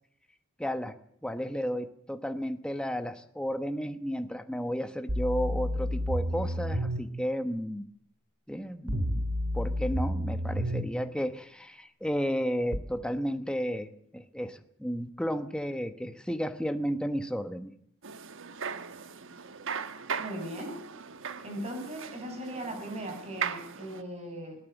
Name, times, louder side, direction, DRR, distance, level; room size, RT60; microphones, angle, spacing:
voice 1, 0.6-0.9 1.2-7.9 8.5-9.2 9.5-17.7, equal, 5° left, 8 dB, 1.1 m, -33 dB
sound 1, 5.1-7.0 8.9-10.9 12.7-12.8, equal, 90° right, 2.5 m, -30 dB
sound 2, 18.0-24.0, right 6 dB, 60° right, 1.3 m, -38 dB
voice 2, 20.1-20.8 21.4-24.6, right 1 dB, 30° right, 4 dB, 7.2 m, -38 dB
20.5 x 18.0 x 7.3 m, 0.62 s
head